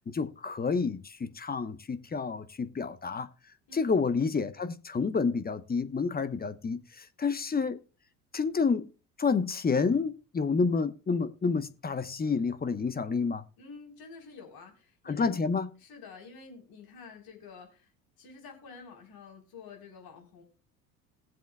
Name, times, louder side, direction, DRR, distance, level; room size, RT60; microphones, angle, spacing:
voice 1, 0.1-3.3 3.7-7.8 8.3-8.9 9.2-13.4 15.1-15.7, left 5 dB, 20° left, 1.0 m, -29 dB
voice 2, 13.6-15.3 15.8-17.9 18.2-20.4, left 5 dB, 55° left, 4.0 m, -49 dB
21.0 x 7.6 x 2.3 m
hypercardioid pair, 65°, 43 cm